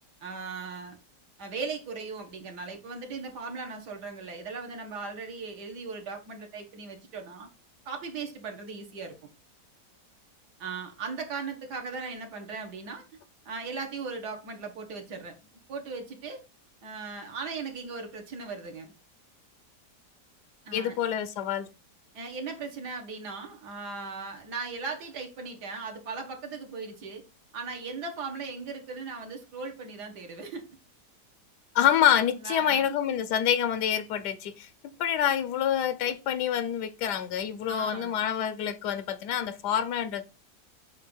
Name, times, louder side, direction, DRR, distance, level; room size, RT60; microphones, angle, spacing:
voice 1, 0.2-1.0 1.4-7.5 7.9-9.1 10.6-13.0 13.5-15.3 15.7-16.4 16.8-18.9 20.7-21.0 22.1-27.2 27.5-30.6 32.4-33.0 37.7-38.2, right 4 dB, 70° right, 1.9 m, -38 dB
voice 2, 20.7-21.7 31.7-34.7 35.0-40.2, left 9 dB, 75° left, 1.2 m, -27 dB
7.5 x 2.5 x 5.4 m
omnidirectional pair, 1.8 m